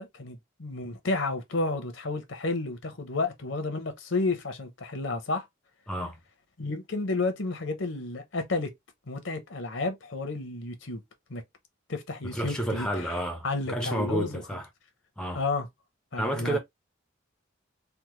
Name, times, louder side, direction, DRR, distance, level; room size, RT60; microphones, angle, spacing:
voice 1, 0.0-5.4 6.6-8.7 9.1-11.0 11.3-11.4 11.9-13.1 13.4-14.4 15.3-15.7 16.1-16.6, left 3 dB, 70° left, 0.8 m, -31 dB
voice 2, 5.9-6.2 12.3-14.7 15.2-15.4 16.2-16.6, right 1 dB, 5° left, 0.5 m, -30 dB
3.5 x 2.2 x 3.0 m
head